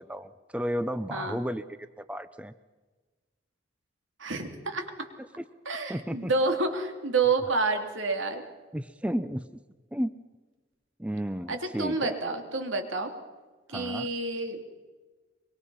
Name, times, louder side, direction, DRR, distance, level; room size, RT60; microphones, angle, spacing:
voice 1, 0.0-1.6 2.0-2.5 5.2-5.4 5.9-6.3 8.7-9.6 9.9-10.1 11.0-12.2 13.7-14.1, equal, 5° right, 12 dB, 0.6 m, -33 dB
voice 2, 4.2-5.1 5.7-8.4 11.5-13.1 13.7-14.6, right 3 dB, 75° right, 5 dB, 3.0 m, -29 dB
24.5 x 22.5 x 5.7 m, 1.3 s
head